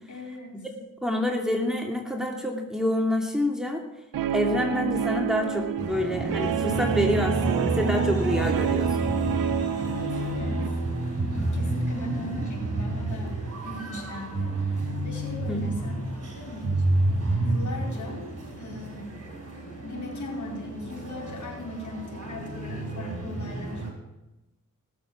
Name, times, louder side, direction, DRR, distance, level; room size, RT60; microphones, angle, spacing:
voice 1, 0.1-0.6 9.8-10.7 11.3-16.9 17.4-18.3 18.6-19.1 19.8-23.8, left 1 dB, 60° left, 0 dB, 4.7 m, -39 dB
voice 2, 1.0-3.8 4.3-9.1 15.5-15.6, left 1 dB, ahead, 1 dB, 2.4 m, -27 dB
Guitar, 4.1-10.7, right 9 dB, 80° right, 0.8 m, -28 dB
sound 1, 5.8-23.9, right 1 dB, 50° right, 5.7 m, -30 dB
19.0 x 7.3 x 7.2 m, 1.0 s
cardioid pair, 65°, 33 cm